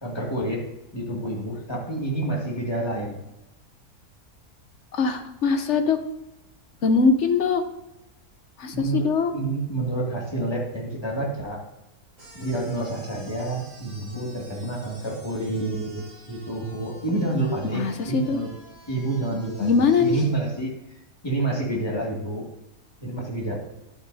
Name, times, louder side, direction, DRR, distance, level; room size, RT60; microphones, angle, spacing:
voice 1, 0.0-0.6 0.9-3.2 8.7-9.0 9.3-11.6 12.3-18.5 18.9-20.7 21.2-22.4 23.0-23.6, right 2 dB, 15° left, -3 dB, 2.1 m, -28 dB
voice 2, 4.9-6.0 6.8-7.6 8.6-9.3 17.6-18.4 19.3-20.2, left 4 dB, 55° left, 8 dB, 1.0 m, -22 dB
sound 1, 12.2-20.3, right 1 dB, 55° right, 4.5 m, -49 dB
12.0 x 9.0 x 2.7 m, 0.93 s
omnidirectional pair, 1.6 m